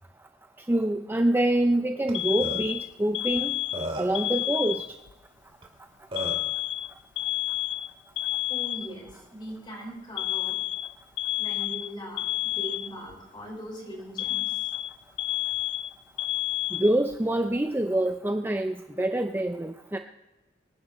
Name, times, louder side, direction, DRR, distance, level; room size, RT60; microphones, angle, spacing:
voice 1, 0.7-3.6 4.0-4.8 16.7-20.0, right 1 dB, 10° right, 6 dB, 0.5 m, -26 dB
Alarm, 2.1-5.1 6.2-9.1 10.2-13.1 14.2-17.2, left 15 dB, 70° left, 0.4 m, -30 dB
Burping eructation, 2.1-2.2 2.4-2.6 3.4-3.5 3.7-4.2 5.6-5.7 6.1-6.5, right 1 dB, 30° right, 2.2 m, -33 dB
voice 2, 8.5-10.6 11.4-14.6, equal, 25° left, -2 dB, 4.9 m, -40 dB
24.5 x 10.0 x 3.1 m, 1.0 s
head